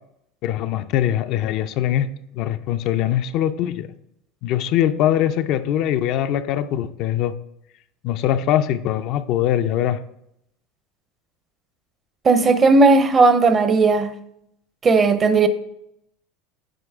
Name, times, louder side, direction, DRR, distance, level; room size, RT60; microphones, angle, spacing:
voice 1, 0.4-3.9 4.4-7.3 8.0-10.0, left 11 dB, 55° left, 0.4 m, -22 dB
voice 2, 12.2-14.1 14.8-15.5, right 3 dB, 25° right, 0.6 m, -15 dB
7.9 x 5.2 x 3.5 m
supercardioid pair, 120°, 0 cm